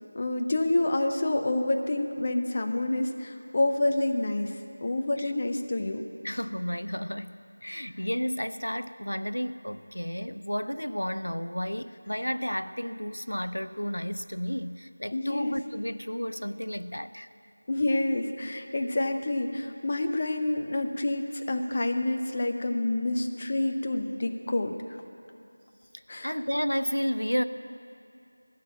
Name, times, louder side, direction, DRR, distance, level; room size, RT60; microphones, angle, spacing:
voice 1, 0.1-4.5 4.8-6.0 6.3-6.4 15.1-15.6 17.7-24.8 26.1-26.4, left 2 dB, 30° left, 5 dB, 0.7 m, -28 dB
voice 2, 6.2-7.3 7.6-17.3 26.2-27.4, equal, 85° left, 12 dB, 0.5 m, -32 dB
16.0 x 6.9 x 8.7 m, 2.5 s
figure-of-eight pair, 170°, 0 cm